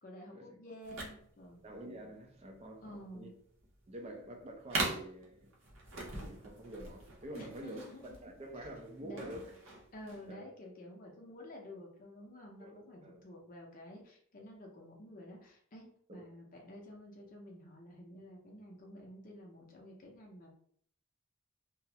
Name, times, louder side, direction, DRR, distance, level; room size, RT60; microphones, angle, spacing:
voice 1, 0.0-1.6 2.8-3.3 7.4-8.3 9.0-9.4 9.9-20.6, left 1 dB, 45° left, 0.5 m, -51 dB
sound 1, 0.8-10.3, right 2 dB, 75° right, 0.7 m, -42 dB
voice 2, 1.6-3.3 3.9-5.5 5.9-7.8 8.2-9.5 10.3-10.4 12.6-13.2 16.1-16.2, right 1 dB, 30° right, 0.4 m, -47 dB
2.3 x 2.0 x 2.7 m
head